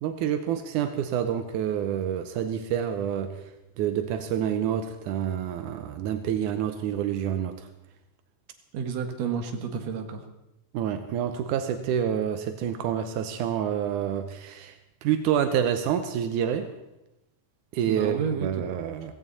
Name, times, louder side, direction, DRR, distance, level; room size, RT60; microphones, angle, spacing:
voice 1, 0.0-3.4 3.8-7.6 10.7-14.7 15.0-16.7 17.7-19.1, right 9 dB, 85° right, 8 dB, 2.3 m, -28 dB
voice 2, 8.7-10.2 17.9-18.6, right 6 dB, 60° right, 5 dB, 2.5 m, -30 dB
16.5 x 16.0 x 4.1 m, 0.94 s
omnidirectional pair, 3.6 m